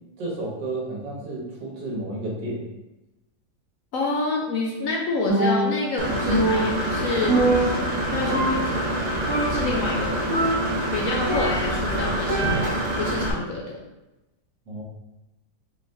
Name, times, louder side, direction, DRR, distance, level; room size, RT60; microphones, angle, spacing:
voice 1, 0.2-2.7 14.7-14.8, right 2 dB, 85° right, -3 dB, 1.8 m, -31 dB
voice 2, 3.9-9.0 9.5-10.2 10.9-12.7 13.0-13.8, left 3 dB, 65° left, -2 dB, 0.9 m, -28 dB
Percussion, 5.3-6.0 6.3-8.0 8.3-9.0 9.3-9.8 10.3-11.9 12.3-13.0, right 1 dB, 35° right, 1.4 m, -24 dB
Engine / Mechanisms, 6.0-13.3, right 1 dB, 55° right, 0.5 m, -26 dB
4.6 x 3.4 x 2.7 m, 1.0 s
omnidirectional pair, 1.8 m